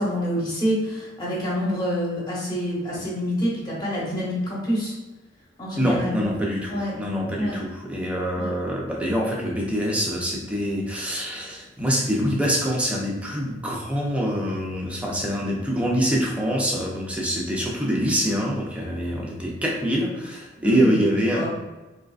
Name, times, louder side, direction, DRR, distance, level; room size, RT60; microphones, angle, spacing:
voice 1, 0.0-4.9 5.6-6.2 6.7-6.9 7.4-7.6 8.4-8.5 20.6-21.0 21.3-21.5, equal, 20° left, -6 dB, 1.1 m, -27 dB
voice 2, 5.8-21.5, equal, 5° right, -2 dB, 0.6 m, -25 dB
3.6 x 3.0 x 2.4 m, 1.1 s
head